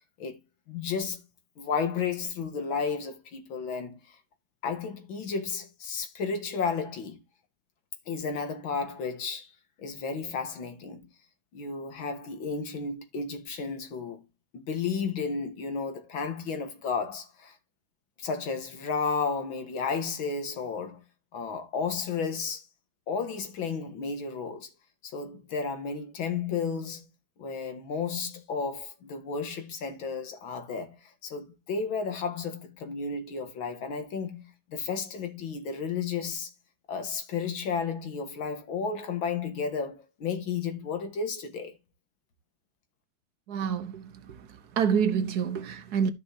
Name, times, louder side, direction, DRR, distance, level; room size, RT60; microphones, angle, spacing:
voice 1, 0.7-1.2 1.6-4.2 4.6-7.2 8.1-9.5 9.8-11.1 11.5-14.2 14.5-17.6 18.2-21.0 21.3-22.6 23.1-24.7 25.0-27.0 27.4-36.5 36.9-41.8, left 5 dB, 80° left, 2.3 m, -33 dB
voice 2, 43.5-44.5 44.7-46.1, right 7 dB, 60° right, 1.3 m, -27 dB
13.5 x 5.3 x 2.8 m
omnidirectional pair, 2.1 m